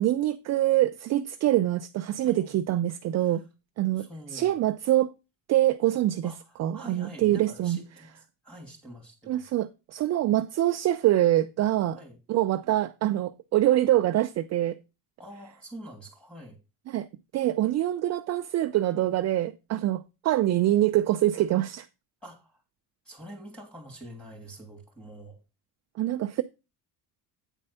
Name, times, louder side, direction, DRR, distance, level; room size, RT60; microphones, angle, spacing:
voice 1, 0.0-3.4 3.8-4.1 4.3-5.1 5.5-6.3 6.6-7.8 9.3-12.0 12.3-14.8 16.9-17.1 17.3-21.9 26.0-26.4, right 14 dB, 45° right, 0.4 m, -25 dB
voice 2, 2.2-2.6 3.1-3.4 4.0-4.6 6.2-9.5 11.9-12.2 15.2-16.6 22.2-22.6 23.0-25.4, right 1 dB, 5° left, 2.7 m, -46 dB
9.0 x 4.2 x 5.5 m
cardioid pair, 145°, 40 cm